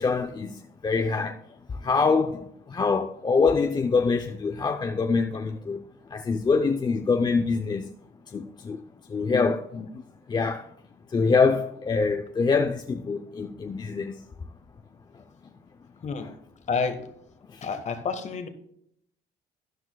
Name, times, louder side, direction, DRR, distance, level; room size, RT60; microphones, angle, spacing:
voice 1, 0.0-1.4 1.7-5.8 6.1-7.9 8.3-8.8 9.1-10.7 11.1-14.2 15.4-15.5 16.2-16.3 17.5-17.7, left 4 dB, 25° left, 0.6 m, -25 dB
voice 2, 16.7-17.0 17.6-18.5, left 5 dB, 45° left, 1.3 m, -29 dB
12.5 x 10.5 x 2.3 m
cardioid pair, 110°, 17 cm